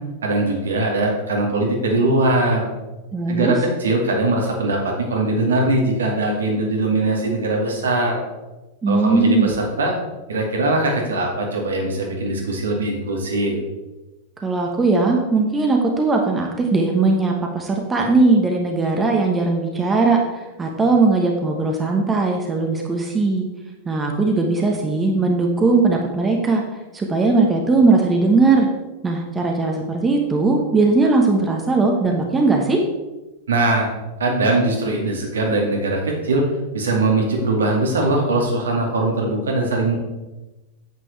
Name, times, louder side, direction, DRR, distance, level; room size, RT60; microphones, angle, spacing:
voice 1, 0.2-2.7 3.3-8.2 8.9-9.9 10.3-13.6 33.5-33.9 34.2-36.4 36.7-39.9, right 2 dB, 70° right, 0 dB, 2.1 m, -21 dB
voice 2, 3.1-3.5 8.8-9.5 14.4-23.5 23.8-26.6 26.9-28.7 29.0-32.8, right 3 dB, 15° right, 1 dB, 1.2 m, -19 dB
9.3 x 8.3 x 3.3 m, 1.1 s
figure-of-eight pair, 90°, 0 cm